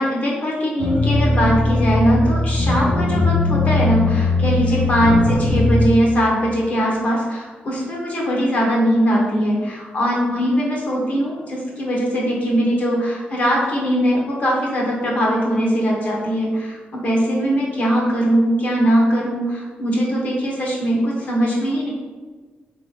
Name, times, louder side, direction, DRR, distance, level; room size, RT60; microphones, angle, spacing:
voice 1, 0.0-21.9, equal, 45° left, -3 dB, 1.0 m, -20 dB
sound 1, 0.8-5.9, left 2 dB, 70° left, 0.9 m, -19 dB
4.0 x 2.8 x 3.2 m, 1.4 s
wide cardioid pair, 150°, 4 cm